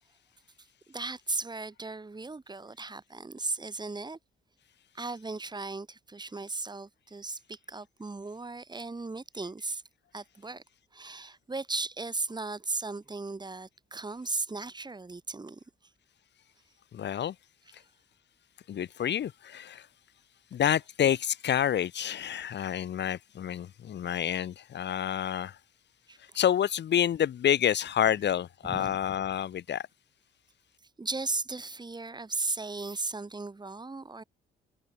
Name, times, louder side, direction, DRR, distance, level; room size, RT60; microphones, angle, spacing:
voice 1, 0.9-4.2 4.9-9.8 10.1-10.6 10.9-15.6 26.1-26.4 28.6-29.0 31.0-34.2, right 3 dB, 20° right, 4.5 m, -36 dB
voice 2, 16.9-17.4 18.7-19.9 20.5-25.6 26.2-29.9, left 10 dB, 60° left, 2.5 m, -28 dB
cardioid pair, 90°, 20 cm